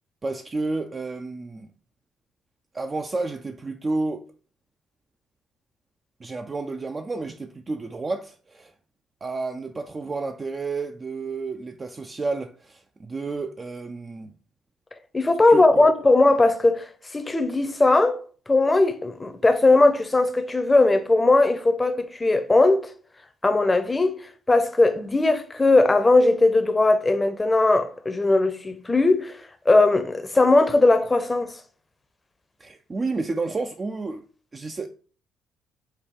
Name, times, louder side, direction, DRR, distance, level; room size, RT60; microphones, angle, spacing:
voice 1, 0.2-1.7 2.7-4.2 6.2-8.7 9.2-14.3 15.5-15.9 32.6-34.2 34.5-34.9, right 3 dB, 30° right, 0.3 m, -31 dB
voice 2, 15.1-16.8 17.1-18.2 18.5-22.9 23.4-24.2 24.5-29.3 29.7-31.5, left 2 dB, 20° left, 0.6 m, -19 dB
4.4 x 2.2 x 3.5 m
hypercardioid pair, 55°, 0 cm